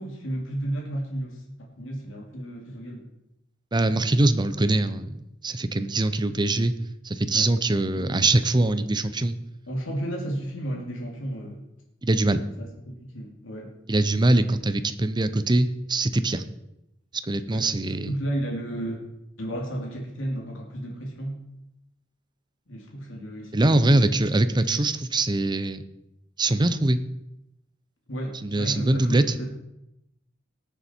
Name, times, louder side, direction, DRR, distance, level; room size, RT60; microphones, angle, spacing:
voice 1, 0.0-3.1 7.3-8.2 9.7-11.6 12.6-12.7 13.1-13.7 17.5-17.7 18.1-19.1 19.4-21.4 22.7-24.0 28.1-29.5, right 1 dB, 85° left, 0 dB, 2.7 m, -33 dB
voice 2, 3.7-6.7 7.0-9.4 12.0-12.4 13.9-16.4 17.2-18.1 23.5-25.8 26.4-27.0 28.4-29.2, right 2 dB, 25° right, 11 dB, 0.7 m, -23 dB
19.5 x 7.1 x 4.5 m, 0.87 s
head